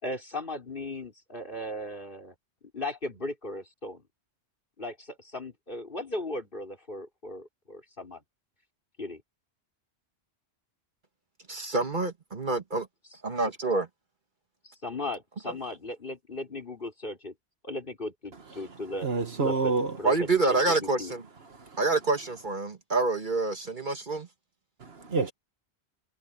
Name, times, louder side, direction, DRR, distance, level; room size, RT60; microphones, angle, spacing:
voice 1, 0.0-2.3 2.7-4.0 4.8-8.2 9.0-9.2 14.6-17.3 17.6-19.1 19.4-19.7 20.0-21.1, left 1 dB, 50° left, 4.7 m, -37 dB
voice 2, 11.5-12.9 13.2-13.9 20.0-21.2 21.8-24.3, right 3 dB, 45° right, 1.7 m, -27 dB
voice 3, 19.0-20.0 21.5-21.8 24.8-25.3, right 4 dB, 65° right, 1.7 m, -28 dB
omnidirectional pair, 1.1 m